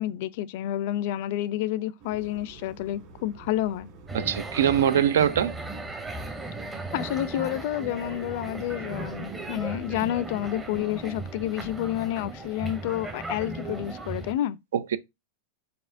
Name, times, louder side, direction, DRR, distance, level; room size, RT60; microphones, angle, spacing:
voice 1, 0.0-3.9 6.9-14.6, left 13 dB, 55° left, 0.4 m, -29 dB
sound 1, 2.0-10.7, right 3 dB, 45° right, 1.7 m, -49 dB
sound 2, 4.1-14.3, right 2 dB, 10° right, 0.6 m, -37 dB
voice 2, 4.1-5.5 14.7-15.0, right 9 dB, 85° right, 0.4 m, -23 dB
4.2 x 4.2 x 2.5 m
supercardioid pair, 150°, 0 cm